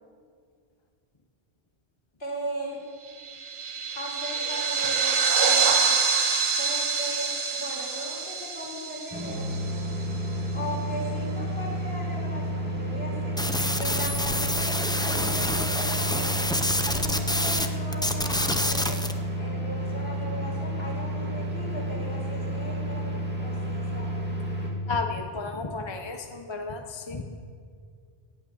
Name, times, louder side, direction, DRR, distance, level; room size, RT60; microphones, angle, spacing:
voice 1, 2.2-2.8 3.9-6.0 6.5-9.5 10.5-13.4 13.8-16.3 16.9-19.0 19.4-23.1 23.4-24.3, equal, 65° left, -4 dB, 4.3 m, -37 dB
sound 1, 3.2-10.0, right 5 dB, 50° right, 1.1 m, -26 dB
sound 2, 9.1-24.7, right 1 dB, 10° right, 2.2 m, -31 dB
sound 3, 13.4-17.7 17.9-19.1, left 1 dB, 5° left, 0.4 m, -27 dB
voice 2, 24.9-27.2, left 3 dB, 25° left, 5 dB, 0.8 m, -33 dB
17.5 x 8.8 x 7.1 m, 2.1 s
omnidirectional pair, 1.1 m